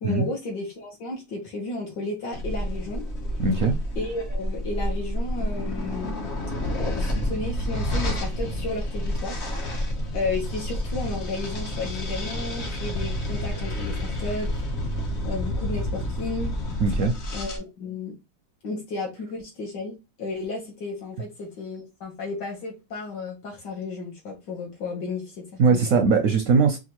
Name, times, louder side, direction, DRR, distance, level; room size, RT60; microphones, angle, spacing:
voice 1, 0.0-3.0 4.0-6.2 6.7-9.4 10.1-14.6 15.2-16.5 17.3-18.1 18.6-25.8, left 3 dB, 70° left, 1.7 m, -33 dB
sound 1, 2.3-17.6, left 1 dB, 45° left, 1.0 m, -29 dB
voice 2, 3.4-3.7 16.8-17.1 25.6-26.8, right 4 dB, 65° right, 0.8 m, -20 dB
5.0 x 2.5 x 3.0 m
omnidirectional pair, 2.0 m